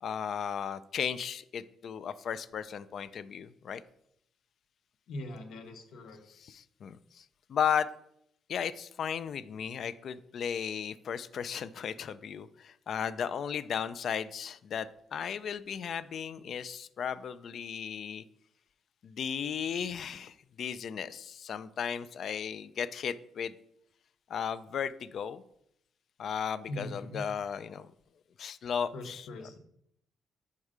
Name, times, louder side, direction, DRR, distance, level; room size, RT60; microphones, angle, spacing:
voice 1, 0.0-3.8 6.3-7.9 8.5-18.2 19.0-23.5 24.3-25.4 26.2-27.9 28.4-29.3, left 7 dB, 55° left, 14 dB, 0.3 m, -35 dB
voice 2, 5.1-6.2 26.7-27.2 28.9-29.6, left 1 dB, 80° left, 6 dB, 1.0 m, -41 dB
5.4 x 4.7 x 4.9 m, 0.75 s
cardioid pair, 135°, 0 cm